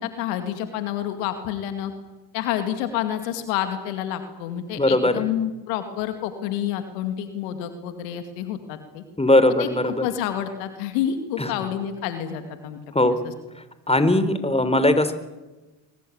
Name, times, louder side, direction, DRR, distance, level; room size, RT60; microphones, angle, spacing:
voice 1, 0.0-1.9 2.3-9.0 9.6-12.8 13.0-13.3, left 10 dB, 90° left, 8 dB, 2.3 m, -29 dB
voice 2, 4.8-5.3 9.2-10.1 11.4-11.5 12.9-13.2 13.9-15.1, left 1 dB, 15° left, 12 dB, 3.8 m, -19 dB
23.0 x 22.5 x 8.7 m, 1.1 s
hypercardioid pair, 50°, 47 cm